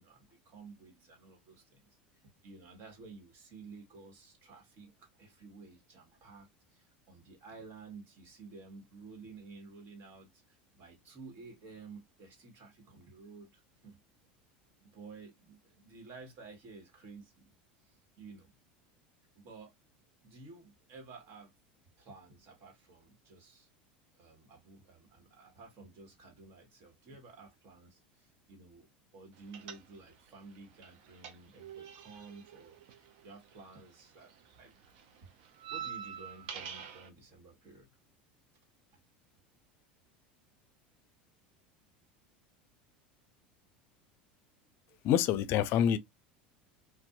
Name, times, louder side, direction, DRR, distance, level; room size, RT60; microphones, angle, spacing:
voice 1, 0.0-1.8 2.4-14.0 14.8-17.5 17.8-18.6 19.3-19.7 20.2-21.5 22.0-23.7 24.1-28.9 29.1-34.7 35.7-37.9 38.9-39.0 44.6-45.0, right 4 dB, 50° right, 1.4 m, -53 dB
sound 1, 29.5-30.3 30.5-33.9 34.2-37.1, right 8 dB, 70° right, 0.6 m, -45 dB
voice 2, 45.0-46.0, left 9 dB, 55° left, 0.4 m, -26 dB
2.5 x 2.3 x 2.3 m
hypercardioid pair, 100°, 5 cm